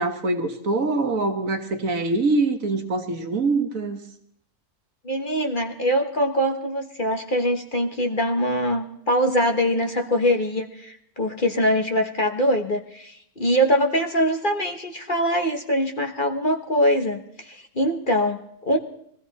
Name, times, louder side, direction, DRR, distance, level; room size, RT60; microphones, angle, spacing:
voice 1, 0.0-4.0, right 3 dB, 60° right, 5 dB, 1.8 m, -24 dB
voice 2, 5.0-18.8, equal, 35° left, 3 dB, 1.4 m, -23 dB
21.5 x 15.0 x 4.2 m, 0.70 s
omnidirectional pair, 1.6 m